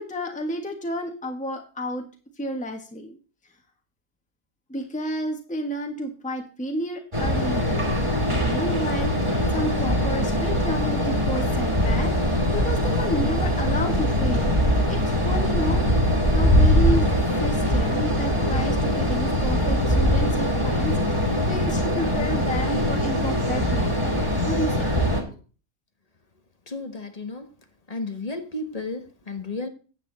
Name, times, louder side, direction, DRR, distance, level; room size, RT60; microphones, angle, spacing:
voice 1, 0.0-2.1 2.4-3.2 4.7-7.9 8.5-14.5 14.9-15.8 16.3-17.1 17.4-24.0 24.4-25.4, equal, 5° left, 1.5 m, -31 dB
sound 1, 7.1-25.2, equal, 20° right, 2.3 m, -22 dB
voice 2, 26.7-27.5 27.9-29.7, left 2 dB, 25° left, 1.1 m, -33 dB
10.0 x 8.4 x 4.0 m
omnidirectional pair, 1.6 m